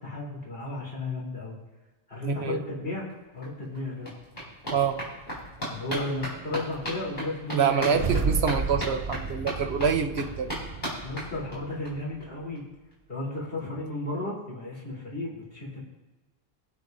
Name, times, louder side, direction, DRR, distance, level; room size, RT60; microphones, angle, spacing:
voice 1, 0.0-1.6 2.1-3.1 3.3-4.1 5.7-8.3 11.0-12.6 13.1-15.9, left 2 dB, 65° left, -5 dB, 3.8 m, -34 dB
voice 2, 2.3-2.6 4.7-5.0 7.5-10.5, right 6 dB, 80° right, 7 dB, 1.1 m, -26 dB
sound 1, 3.1-3.2 3.4-11.9 12.2-12.3 12.6-12.7 12.9-13.0, equal, 50° left, 5.1 m, -37 dB
sound 2, 7.9-12.2, right 5 dB, 40° right, 0.6 m, -32 dB
23.0 x 8.4 x 2.7 m, 1.2 s
omnidirectional pair, 1.1 m